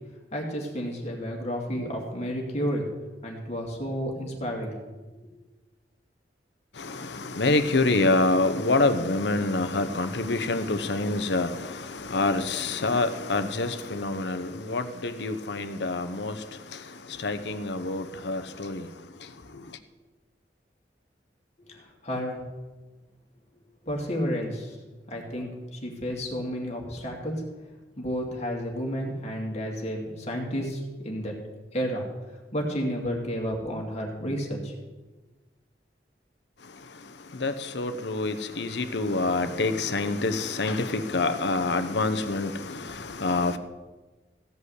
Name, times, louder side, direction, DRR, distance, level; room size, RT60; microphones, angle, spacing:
voice 1, 0.3-2.9 3.2-4.8 5.1-5.2 21.6-22.4 23.8-24.8 25.1-27.4 28.0-31.4 31.7-32.1 32.5-34.8, equal, 40° left, 0 dB, 2.4 m, -31 dB
voice 2, 6.8-16.4 17.2-18.9 37.3-43.6, left 3 dB, 75° left, 10 dB, 0.9 m, -26 dB
15.5 x 5.4 x 8.1 m, 1.2 s
head